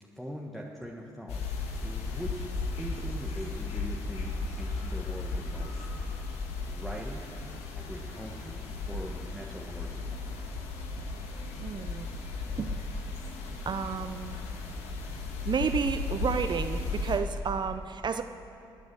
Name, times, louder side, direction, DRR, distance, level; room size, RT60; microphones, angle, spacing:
voice 1, 0.1-1.5 1.8-2.5 2.8-6.1 6.7-7.2 7.7-10.1, equal, ahead, -2 dB, 1.5 m, -42 dB
sound 1, 1.3-17.2, left 3 dB, 75° left, 1.5 m, -35 dB
voice 2, 11.6-12.1 12.6-12.8 13.7-14.4 15.5-18.2, right 6 dB, 45° right, 9 dB, 0.6 m, -31 dB
18.0 x 9.3 x 6.3 m, 2.6 s
hypercardioid pair, 50°, 11 cm